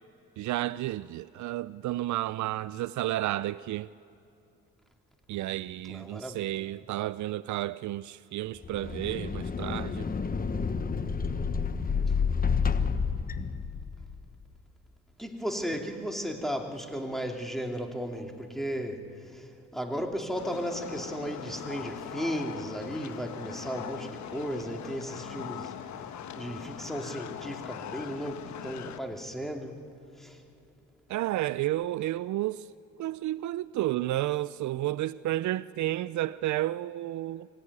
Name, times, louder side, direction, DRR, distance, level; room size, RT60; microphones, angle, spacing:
voice 1, 0.4-3.9 5.3-10.1 31.1-32.7 33.0-37.5, right 15 dB, 70° right, 0.5 m, -31 dB
voice 2, 5.9-6.4 15.2-19.1 19.3-25.7 26.4-29.7 30.2-30.4, equal, ahead, 2.8 m, -35 dB
sound 1, 8.6-14.2, left 5 dB, 30° left, 1.0 m, -29 dB
sound 2, 20.3-29.0, left 9 dB, 70° left, 1.2 m, -41 dB
24.0 x 17.0 x 9.7 m
cardioid pair, 90°, 30 cm